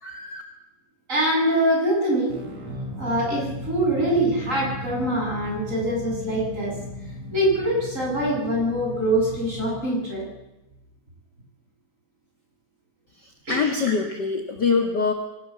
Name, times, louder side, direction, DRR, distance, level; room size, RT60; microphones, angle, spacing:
voice 1, 0.0-0.4 13.2-15.1, left 5 dB, 50° left, 4 dB, 1.3 m, -24 dB
voice 2, 1.1-2.3 3.0-6.8 7.3-10.3 13.4-13.7, right 1 dB, 20° right, -2 dB, 8.3 m, -24 dB
sound 1, 2.3-11.0, equal, 55° right, 4.9 m, -36 dB
25.0 x 17.5 x 7.3 m, 0.96 s
omnidirectional pair, 4.5 m